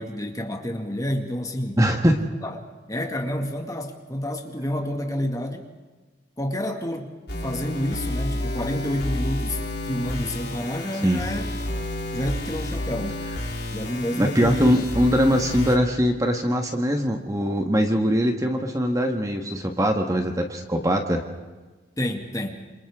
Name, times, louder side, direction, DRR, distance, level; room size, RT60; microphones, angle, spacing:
voice 1, 0.0-1.8 2.4-2.6 2.9-5.7 6.4-7.2 7.4-11.5 12.1-13.2 13.7-14.9 22.0-22.6, left 1 dB, 20° left, 3 dB, 2.1 m, -29 dB
voice 2, 1.8-2.2 11.0-11.2 14.2-21.2, equal, 20° right, 4 dB, 1.4 m, -22 dB
sound 1, 7.3-15.8, left 1 dB, 60° left, 4.1 m, -30 dB
27.5 x 27.5 x 3.7 m, 1.3 s
head